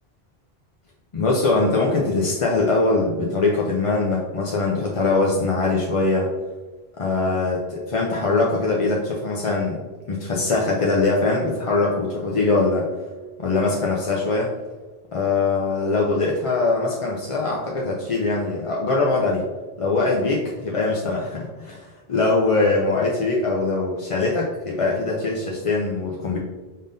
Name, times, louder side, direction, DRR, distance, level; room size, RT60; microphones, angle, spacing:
voice 1, 1.1-6.3 7.0-7.6 7.9-9.8 10.1-12.9 13.4-14.5 15.1-19.4 19.8-26.4, left 3 dB, 45° left, -2 dB, 0.5 m, -22 dB
5.1 x 3.7 x 2.6 m, 1.3 s
omnidirectional pair, 1.0 m